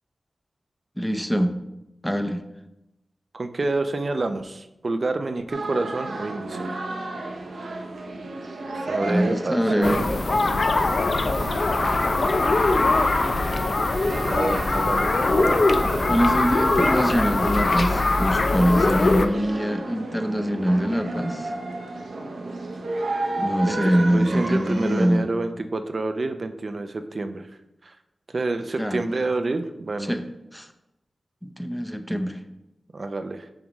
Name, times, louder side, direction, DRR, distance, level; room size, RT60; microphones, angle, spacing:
voice 1, 1.0-1.5 2.0-2.4 9.0-10.0 16.1-21.5 23.4-25.3 28.8-29.0 30.1-30.2 30.5-30.7 31.4-32.4, equal, 5° left, 7 dB, 0.7 m, -23 dB
voice 2, 3.3-6.8 8.9-10.0 14.3-15.7 23.6-27.5 27.8-28.0 28.3-30.1 32.9-33.5, right 2 dB, 55° right, 8 dB, 0.5 m, -28 dB
sound 1, 5.5-25.1, right 2 dB, 85° right, 0.8 m, -32 dB
sound 2, 9.8-19.3, left 3 dB, 60° left, 0.5 m, -22 dB
7.1 x 5.0 x 3.1 m, 0.91 s
cardioid pair, 50°, 0 cm